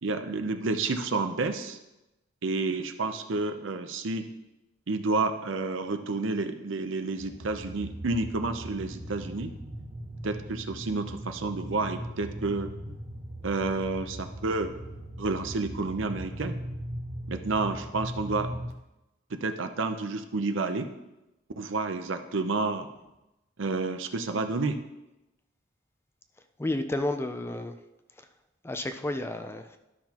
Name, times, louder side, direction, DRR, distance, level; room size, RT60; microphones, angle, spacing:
voice 1, 0.0-1.8 2.4-4.3 4.9-9.5 10.2-12.7 13.4-14.7 15.2-16.6 17.3-18.5 19.3-20.9 21.6-22.9 23.6-24.8, right 3 dB, 70° right, 8 dB, 0.7 m, -30 dB
sound 1, 7.1-18.7, right 1 dB, 35° right, 0.8 m, -39 dB
voice 2, 26.6-27.8 28.6-29.8, left 1 dB, 10° left, 8 dB, 0.4 m, -31 dB
12.5 x 5.8 x 2.9 m, 0.96 s
head